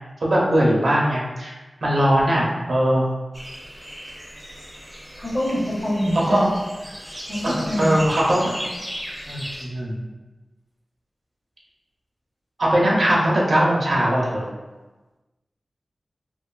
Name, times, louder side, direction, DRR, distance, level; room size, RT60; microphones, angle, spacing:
voice 1, 0.2-1.5 1.8-3.0 6.1-6.5 7.4-8.5 9.3-10.0 12.6-14.5, right 1 dB, 75° right, -4 dB, 0.6 m, -20 dB
sound 1, 3.3-9.6, equal, 10° right, 0.6 m, -36 dB
voice 2, 5.2-6.4 7.3-7.9, equal, 15° left, -5 dB, 0.8 m, -25 dB
2.6 x 2.3 x 2.3 m, 1.2 s
cardioid pair, 50°, 0 cm